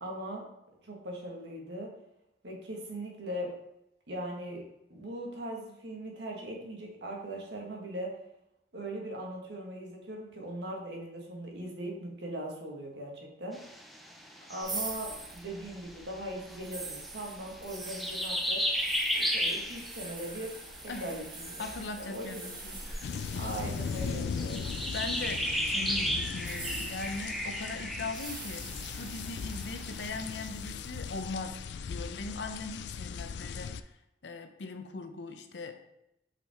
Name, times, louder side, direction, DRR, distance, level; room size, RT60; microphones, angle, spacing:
voice 1, 0.0-0.4 0.8-1.9 2.4-3.5 4.1-4.6 4.9-8.1 8.7-13.6 14.5-18.6 19.2-21.6 22.0-22.3 23.4-24.6, right 1 dB, 70° right, -1 dB, 1.6 m, -39 dB
sound 1, 13.5-30.4, equal, ahead, 0.6 m, -36 dB
sound 2, 14.6-25.6 26.3-31.2, right 2 dB, 25° right, 1.5 m, -45 dB
voice 2, 21.6-23.2 24.9-28.7 29.0-31.6 31.9-34.0 34.2-35.7, left 3 dB, 85° left, 7 dB, 0.7 m, -40 dB
sound 3, 23.0-33.8, left 6 dB, 70° left, 0.3 m, -38 dB
6.0 x 5.7 x 3.6 m, 0.85 s
head